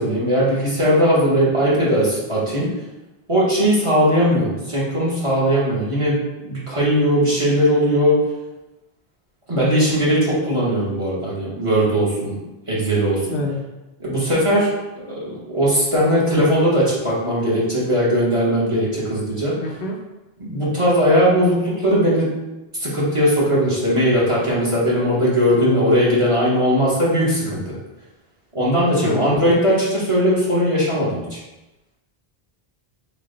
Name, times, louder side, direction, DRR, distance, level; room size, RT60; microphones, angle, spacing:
voice 1, 0.0-2.7 3.3-8.3 9.5-12.4 12.7-13.3 14.0-14.7 15.1-15.2 15.5-19.5 20.4-22.3 22.7-27.7 28.5-31.4, equal, 30° right, -7 dB, 1.1 m, -19 dB
voice 2, 13.3-13.6 19.6-20.0 25.5-26.0 29.0-29.5, left 3 dB, 65° left, -1 dB, 0.8 m, -26 dB
3.8 x 2.2 x 3.8 m, 1.0 s
omnidirectional pair, 1.0 m